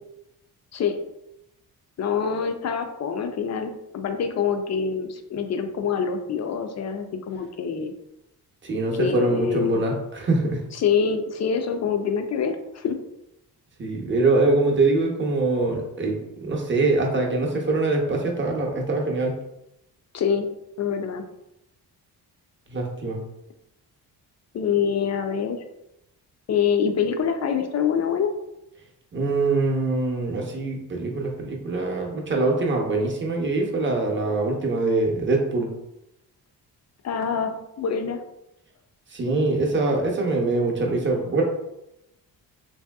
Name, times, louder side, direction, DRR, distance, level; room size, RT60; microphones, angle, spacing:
voice 1, 2.0-7.9 9.0-9.8 10.7-13.0 20.1-20.5 20.8-21.2 24.5-25.6 26.5-28.3 37.0-38.2, left 6 dB, 45° left, 7 dB, 0.4 m, -25 dB
voice 2, 8.6-10.6 13.8-19.4 22.7-23.2 29.1-35.7 39.1-41.4, right 3 dB, 30° right, 0 dB, 0.7 m, -23 dB
3.2 x 2.7 x 2.3 m, 0.86 s
cardioid pair, 90°, 39 cm